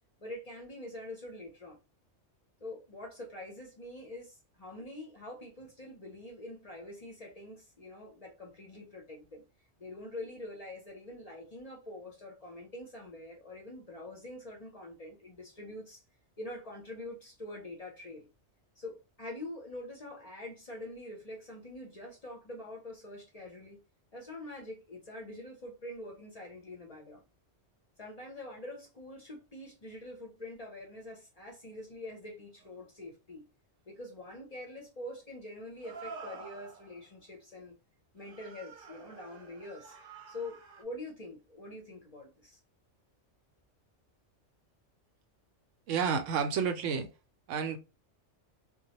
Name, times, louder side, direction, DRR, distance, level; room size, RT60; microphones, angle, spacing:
voice 1, 0.2-1.8 2.6-9.4 9.8-16.0 16.4-18.3 18.8-23.8 24.1-27.2 28.0-33.5 33.9-37.7 38.1-40.0 40.3-42.6, left 1 dB, 40° left, 0.6 m, -45 dB
sound 1, 32.6-32.7 35.8-37.0 38.2-40.8, right 4 dB, 60° right, 0.7 m, -48 dB
voice 2, 45.9-47.1 47.5-47.8, right 6 dB, 85° right, 0.9 m, -30 dB
2.2 x 2.1 x 2.8 m
omnidirectional pair, 1.2 m